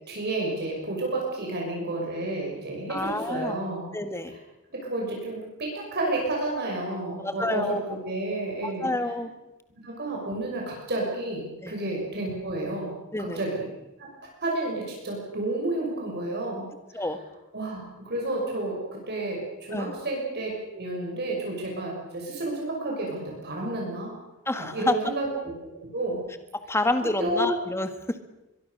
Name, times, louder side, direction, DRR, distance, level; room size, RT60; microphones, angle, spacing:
voice 1, 0.1-3.9 4.3-4.4 4.7-8.9 9.8-12.9 13.2-13.7 14.0-14.1 14.4-17.0 17.5-24.1 24.6-25.3 25.9-26.2 27.2-27.6, right 2 dB, 50° right, -1 dB, 6.4 m, -31 dB
voice 2, 2.9-3.6 3.9-4.4 7.2-8.0 8.6-9.3 11.6-11.8 13.1-13.4 16.9-17.2 19.7-20.0 24.5-25.0 26.5-28.2, left 2 dB, 10° left, 9 dB, 1.8 m, -28 dB
23.0 x 23.0 x 6.7 m, 0.99 s
head